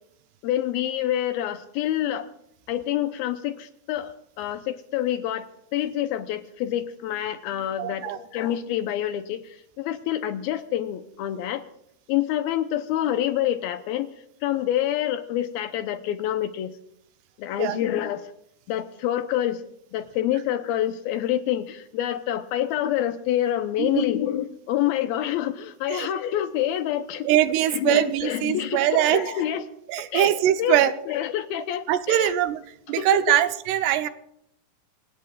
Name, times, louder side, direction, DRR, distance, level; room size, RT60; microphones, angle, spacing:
voice 1, 0.4-2.3 2.7-9.4 9.8-11.6 12.1-14.1 14.4-16.7 17.4-18.2 18.7-19.6 19.9-27.3 27.7-29.7 30.1-30.3 30.6-30.8 31.1-32.4 33.0-33.4, left 12 dB, 80° left, 9 dB, 2.5 m, -27 dB
voice 2, 7.8-8.2 17.6-17.8 23.8-24.0 25.9-26.1 27.2-29.3 29.9-30.9 31.9-32.6 32.9-34.1, right 12 dB, 85° right, 10 dB, 2.9 m, -22 dB
25.5 x 18.5 x 2.4 m, 0.75 s
omnidirectional pair, 4.6 m